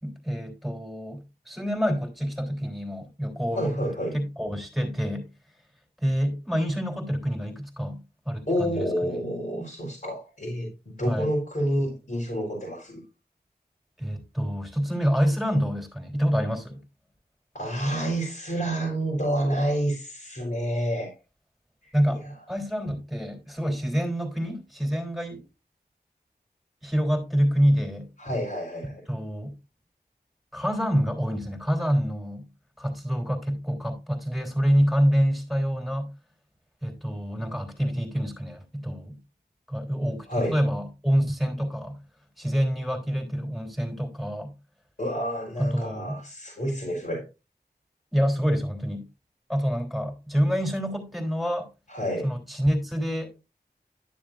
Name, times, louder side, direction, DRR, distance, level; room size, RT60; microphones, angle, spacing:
voice 1, 0.0-3.7 4.1-5.3 6.0-8.9 11.1-11.3 14.0-16.8 21.9-22.2 22.5-25.4 26.8-28.1 28.8-29.6 30.5-32.5 32.8-36.1 36.8-39.2 39.7-42.0 42.4-44.5 45.6-46.2 48.1-49.1 49.5-51.7 52.2-53.4, equal, ahead, 3.5 m, -27 dB
voice 2, 3.5-4.2 8.5-13.0 17.5-21.1 22.1-22.3 28.2-29.0 40.3-40.6 45.0-47.2 51.9-52.3, equal, 55° left, 4.2 m, -28 dB
12.0 x 7.0 x 2.5 m
wide cardioid pair, 45°, 17 cm